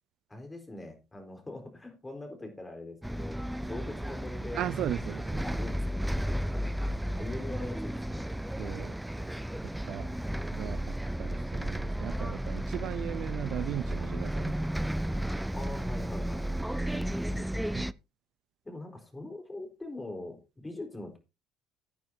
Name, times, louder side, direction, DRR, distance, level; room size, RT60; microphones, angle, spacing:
voice 1, 0.3-4.6 5.0-5.1 5.4-8.3 9.2-9.4 9.9-10.5 15.5-16.9 18.6-21.2, left 2 dB, 20° left, 4.3 m, -43 dB
Bus, 3.0-17.9, right 1 dB, 5° right, 0.5 m, -33 dB
voice 2, 4.5-5.4 8.6-9.0 9.6-10.1 10.5-14.6 16.9-17.9, right 12 dB, 60° right, 0.5 m, -37 dB
16.5 x 9.3 x 2.8 m
hypercardioid pair, 60°, 0 cm